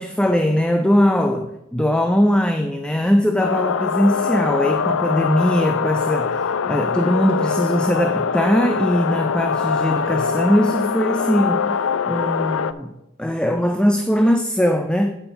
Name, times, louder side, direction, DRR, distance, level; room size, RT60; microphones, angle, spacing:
voice 1, 0.0-12.9 13.2-15.1, equal, 5° left, 0.3 m, -20 dB
sound 1, 3.4-12.7, left 6 dB, 70° left, 0.4 m, -23 dB
8.9 x 5.3 x 5.7 m
head